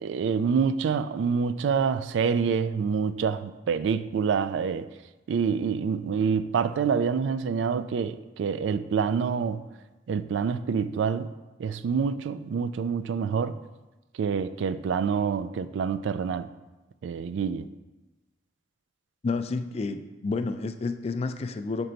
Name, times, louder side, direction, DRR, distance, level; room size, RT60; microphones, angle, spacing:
voice 1, 0.0-4.9 5.3-9.6 10.1-11.3 11.6-13.6 14.2-16.5 17.0-17.7, right 6 dB, 75° right, 0.3 m, -27 dB
voice 2, 19.2-21.9, left 3 dB, 35° left, 0.3 m, -30 dB
6.4 x 4.5 x 3.9 m
head